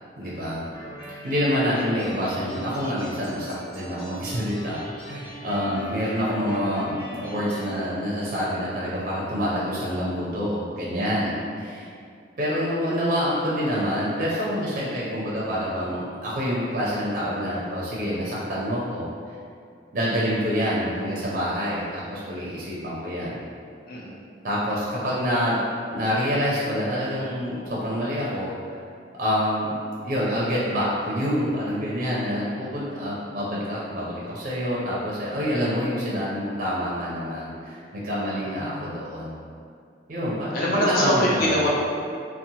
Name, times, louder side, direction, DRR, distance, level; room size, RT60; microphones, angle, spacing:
voice 1, 0.2-0.7 1.1-11.9 12.4-19.1 19.9-23.4 24.4-25.6 25.9-28.5 29.2-29.7 30.0-39.4 40.1-41.6, equal, 45° right, -7 dB, 0.4 m, -27 dB
sound 1, 0.7-7.7, equal, 30° left, 0.9 m, -40 dB
voice 2, 23.9-24.2 32.2-32.7 38.5-39.0 40.5-41.7, equal, 50° left, -5 dB, 0.4 m, -25 dB
2.7 x 2.0 x 2.7 m, 2.3 s
head